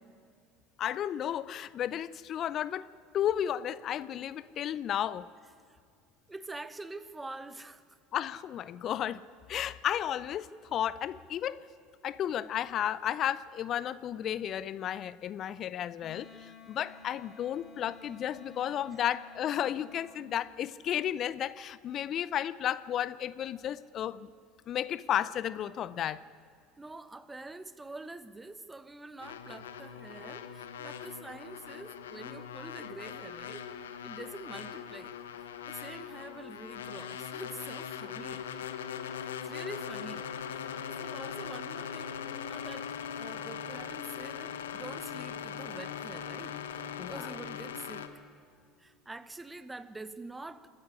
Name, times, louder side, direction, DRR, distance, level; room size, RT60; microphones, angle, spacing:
voice 1, 0.8-2.9 3.1-5.3 8.1-9.2 9.5-11.6 12.0-24.3 24.7-26.2 47.0-47.3, left 10 dB, 45° left, 17 dB, 0.5 m, -33 dB
voice 2, 6.3-8.0 16.4-16.6 26.8-33.7 34.0-38.4 39.4-40.7 41.0-42.2 42.5-48.1 48.8-50.7, right 2 dB, 15° right, 14 dB, 1.1 m, -46 dB
Wind instrument woodwind instrument, 16.0-20.2, left 5 dB, 15° left, 4.3 m, -53 dB
sound 1, 29.2-48.1, left 8 dB, 80° left, 1.1 m, -40 dB
27.5 x 9.8 x 9.9 m, 2.4 s
hypercardioid pair, 70°, 0 cm